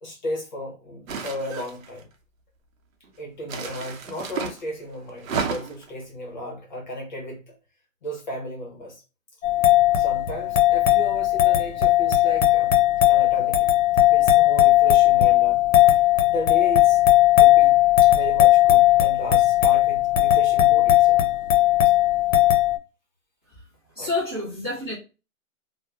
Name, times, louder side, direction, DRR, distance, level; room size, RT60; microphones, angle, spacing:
voice 1, 0.0-2.1 3.2-7.6 8.0-9.0 9.9-12.7 13.1-13.7 14.1-15.6 16.3-17.0 17.4-21.2 24.0-24.1, equal, 35° left, 0.7 m, -34 dB
sound 1, 1.1-2.0 3.4-4.6 5.2-5.9, right 5 dB, 75° right, 0.7 m, -31 dB
sound 2, 9.4-22.8, left 14 dB, 70° left, 0.6 m, -17 dB
voice 2, 23.9-24.9, left 2 dB, 20° right, 0.5 m, -28 dB
2.8 x 2.1 x 2.2 m
hypercardioid pair, 180°, 40 cm